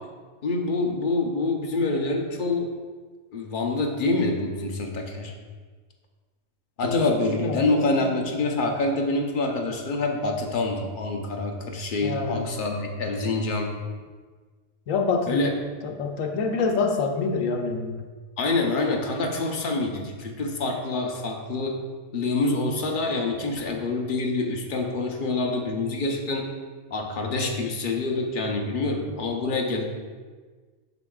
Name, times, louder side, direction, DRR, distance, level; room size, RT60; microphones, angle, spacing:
voice 1, 0.4-2.7 3.3-5.3 6.8-13.7 15.3-15.5 18.4-21.8 22.1-26.5 26.9-29.8, left 2 dB, 45° left, 2 dB, 0.8 m, -26 dB
voice 2, 6.8-8.1 12.0-12.5 14.9-15.5 15.8-18.0 27.3-27.6, left 4 dB, 80° left, 3 dB, 1.1 m, -27 dB
8.0 x 6.2 x 2.3 m, 1.4 s
omnidirectional pair, 1.3 m